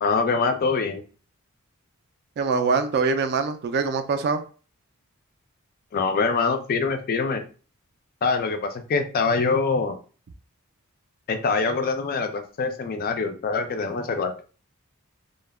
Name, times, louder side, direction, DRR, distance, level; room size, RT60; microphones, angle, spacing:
voice 1, 0.0-1.0 5.9-7.4 8.2-10.0 11.3-14.3, left 4 dB, 40° left, 8 dB, 0.3 m, -24 dB
voice 2, 2.4-4.4, right 4 dB, 45° right, 9 dB, 0.3 m, -23 dB
2.2 x 2.0 x 3.3 m, 0.38 s
head